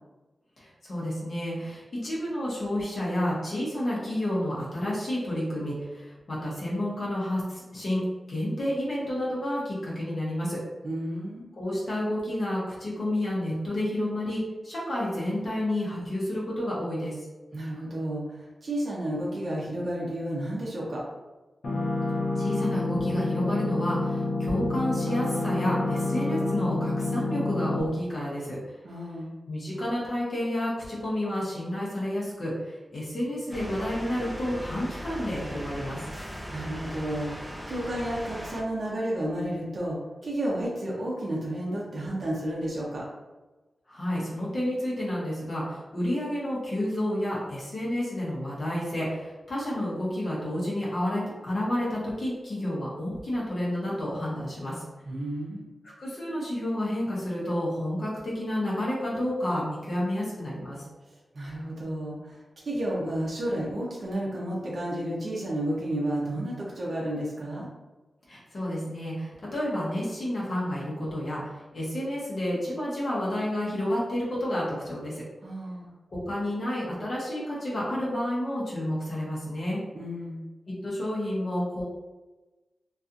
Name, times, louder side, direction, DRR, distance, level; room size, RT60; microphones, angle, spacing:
voice 1, 0.6-8.0 8.3-10.6 11.5-17.3 22.3-28.6 29.5-36.0 43.9-54.8 56.0-60.8 68.3-75.2 76.1-79.8 80.8-81.8, left 1 dB, 45° left, -7 dB, 0.8 m, -30 dB
voice 2, 10.8-11.5 17.5-21.0 28.8-29.3 36.5-43.1 55.1-55.7 61.3-62.4 62.7-67.7 75.4-75.9 79.9-80.4, right 1 dB, 50° right, -5 dB, 0.6 m, -31 dB
sound 1, 21.6-27.8, left 2 dB, 80° left, 0.5 m, -28 dB
sound 2, 33.5-38.6, equal, 10° right, 0.3 m, -38 dB
2.7 x 2.3 x 2.4 m, 1.2 s
wide cardioid pair, 170°, 0 cm